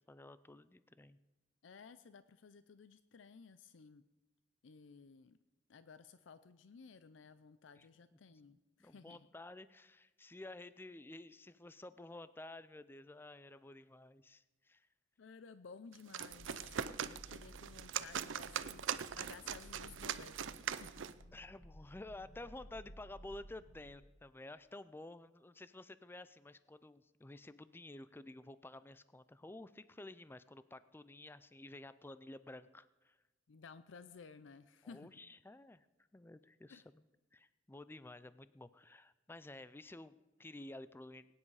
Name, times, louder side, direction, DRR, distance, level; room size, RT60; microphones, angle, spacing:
voice 1, 0.1-1.2 7.8-7.9 8.5-14.9 21.3-33.2 34.8-35.9 36.1-37.0 37.3-41.3, left 2 dB, 10° left, 15 dB, 0.4 m, -52 dB
voice 2, 1.6-4.0 4.6-5.4 5.7-9.3 15.2-18.9 19.2-21.0 33.5-35.2 36.7-36.9, left 5 dB, 80° left, 13 dB, 0.5 m, -56 dB
sound 1, 15.9-21.2, right 8 dB, 90° right, 0.5 m, -41 dB
sound 2, 16.3-23.9, equal, 40° left, 1.8 m, -57 dB
21.5 x 9.8 x 4.8 m, 1.1 s
head